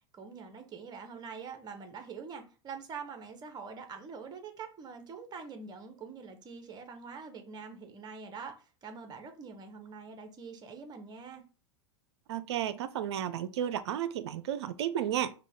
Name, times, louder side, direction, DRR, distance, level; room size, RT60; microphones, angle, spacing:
voice 1, 0.1-11.4, right 5 dB, 25° right, 1.0 m, -45 dB
voice 2, 12.3-15.3, right 10 dB, 65° right, 0.5 m, -33 dB
5.0 x 2.4 x 3.5 m
hypercardioid pair, 95°, 15 cm